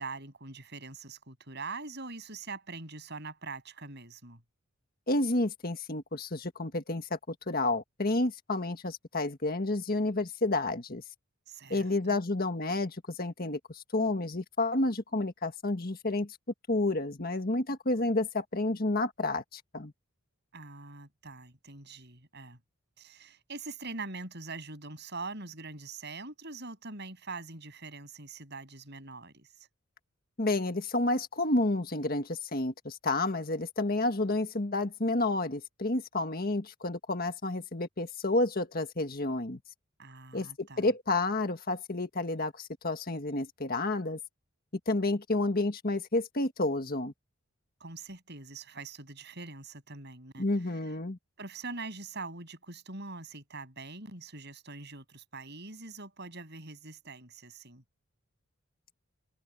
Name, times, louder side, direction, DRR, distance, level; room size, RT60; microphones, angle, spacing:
voice 1, 0.0-4.4 11.5-12.2 20.5-22.6 23.0-29.5 40.0-40.9 47.8-50.5 51.4-57.8, right 3 dB, 50° right, 7.1 m, -43 dB
voice 2, 5.1-11.0 11.7-16.4 16.7-19.9 30.4-39.6 40.3-44.2 44.9-47.1 50.4-51.2, left 2 dB, 45° left, 1.7 m, -30 dB
open air
head